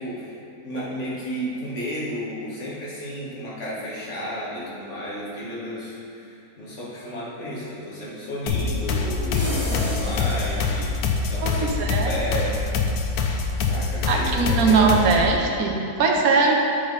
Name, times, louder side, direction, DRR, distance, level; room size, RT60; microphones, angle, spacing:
voice 1, 0.0-12.8 13.6-15.2, equal, 50° left, -7 dB, 1.8 m, -33 dB
sound 1, 8.5-15.3, left 4 dB, 80° left, 1.2 m, -25 dB
sound 2, 9.3-11.2, left 1 dB, 15° left, 1.5 m, -31 dB
voice 2, 11.4-12.1 14.1-16.6, right 4 dB, 70° right, 0 dB, 1.3 m, -20 dB
8.3 x 5.0 x 4.0 m, 2.6 s
omnidirectional pair, 1.6 m